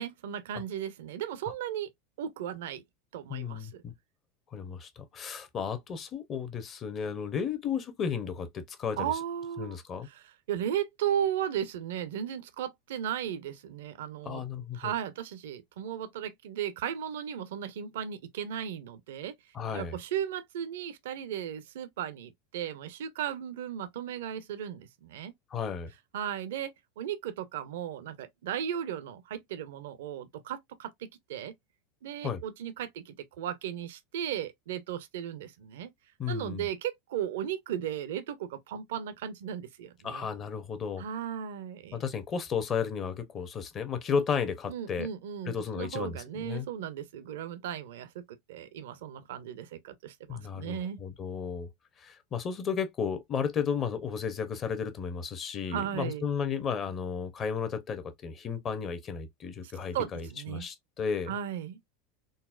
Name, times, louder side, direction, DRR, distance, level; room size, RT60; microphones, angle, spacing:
voice 1, 0.0-1.9 2.2-2.8 3.1-3.8 9.0-9.8 10.1-14.4 14.7-19.4 19.7-25.3 26.1-31.6 32.0-35.9 36.3-40.3 41.0-42.0 44.7-51.0 55.7-56.3 59.6-60.7 61.3-61.8, right 9 dB, 70° right, 0.5 m, -36 dB
voice 2, 3.3-3.9 4.5-9.1 9.6-10.1 14.2-14.9 19.5-20.0 25.5-25.9 32.2-32.4 36.2-36.7 40.0-41.0 41.9-45.1 45.5-46.7 50.3-51.7 52.0-61.3, left 6 dB, 35° left, 0.8 m, -33 dB
3.9 x 2.1 x 2.3 m
hypercardioid pair, 90°, 0 cm